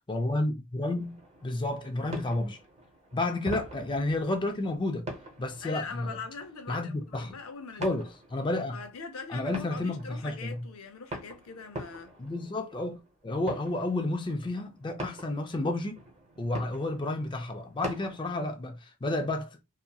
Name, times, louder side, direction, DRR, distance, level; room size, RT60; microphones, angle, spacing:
voice 1, 0.1-2.6 3.1-5.1 5.4-6.2 6.7-7.4 7.8-8.8 9.3-10.6 12.2-16.0 16.4-19.5, left 2 dB, 20° left, 0.4 m, -31 dB
sound 1, 1.0-18.5, right 1 dB, 30° right, 0.9 m, -45 dB
voice 2, 5.6-8.0 8.7-12.1, left 4 dB, 80° left, 0.6 m, -42 dB
2.8 x 2.5 x 2.3 m
head